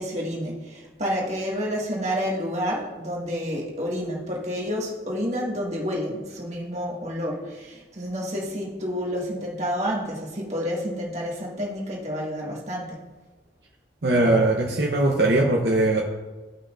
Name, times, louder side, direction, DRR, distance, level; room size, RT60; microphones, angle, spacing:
voice 1, 0.0-13.0, equal, 40° right, -3 dB, 1.7 m, -29 dB
voice 2, 14.0-16.0, right 2 dB, 70° right, -1 dB, 0.8 m, -20 dB
14.5 x 5.6 x 2.5 m, 1.3 s
head